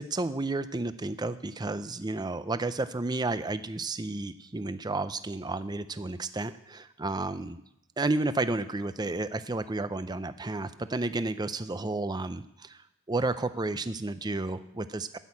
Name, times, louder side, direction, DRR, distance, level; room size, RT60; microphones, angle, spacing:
voice 1, 0.0-7.6 8.0-12.8 13.1-15.2, right 2 dB, 20° right, 12 dB, 0.5 m, -32 dB
12.5 x 6.4 x 8.4 m, 0.81 s
head